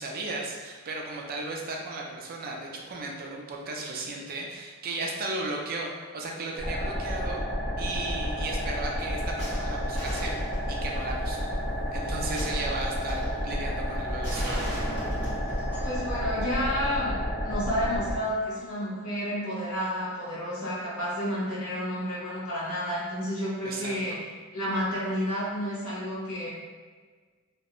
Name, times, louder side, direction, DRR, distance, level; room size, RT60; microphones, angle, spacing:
voice 1, 0.0-7.4 7.8-11.6 11.9-14.7 23.6-23.9, right 2 dB, 40° right, -1 dB, 0.4 m, -35 dB
sound 1, 6.6-18.2, equal, 10° left, 0.7 m, -31 dB
sound 2, 9.4-11.0 12.3-13.3 14.2-16.0 16.4-16.5, equal, 55° left, 1.1 m, -37 dB
voice 2, 15.8-17.1 17.4-24.2 24.5-26.5, equal, 80° left, -8 dB, 1.0 m, -30 dB
2.4 x 2.1 x 2.9 m, 1.5 s
head